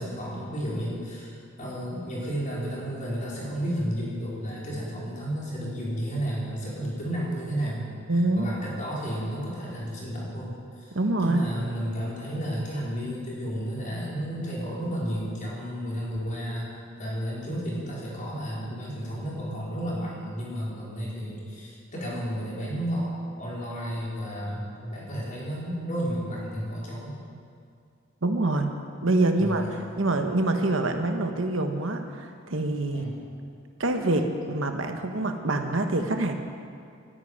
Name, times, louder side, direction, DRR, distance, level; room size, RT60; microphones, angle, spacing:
voice 1, 0.0-16.7 17.0-27.1 29.3-29.6 32.9-33.2, equal, 40° left, -6 dB, 5.0 m, -32 dB
voice 2, 8.1-8.5 10.9-11.4 28.2-28.7 29.0-29.6 30.0-33.1 33.8-36.4, right 2 dB, 70° right, 5 dB, 1.3 m, -25 dB
13.5 x 11.0 x 9.5 m, 2.3 s
head